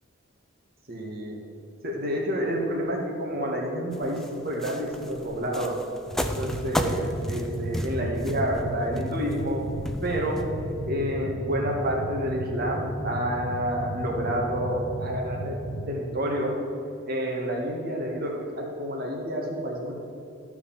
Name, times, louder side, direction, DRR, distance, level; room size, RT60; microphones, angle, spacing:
voice 1, 0.9-1.4 1.8-5.8 6.2-9.7 10.0-10.5 10.9-16.6 17.1-19.9, equal, 50° right, 0 dB, 1.9 m, -29 dB
sound 1, 3.9-10.9, equal, ahead, 0.6 m, -33 dB
sound 2, 6.1-15.8, right 1 dB, 30° right, 2.1 m, -34 dB
13.5 x 5.0 x 7.3 m, 2.7 s
head